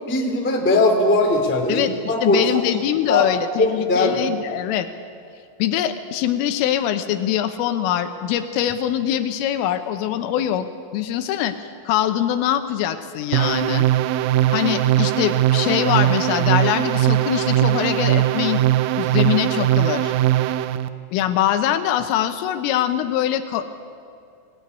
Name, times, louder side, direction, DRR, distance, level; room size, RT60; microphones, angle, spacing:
voice 1, 0.1-2.6 3.1-3.3 3.6-4.2, left 2 dB, 5° left, 1 dB, 1.5 m, -19 dB
voice 2, 2.2-4.9 5.6-10.7 10.9-13.9 14.5-18.6 19.0-20.1 21.1-23.7, left 11 dB, 80° left, 9 dB, 3.6 m, -23 dB
sound 1, 13.3-20.9, right 13 dB, 80° right, 3.2 m, -20 dB
23.0 x 17.5 x 9.7 m, 2.3 s
omnidirectional pair, 5.8 m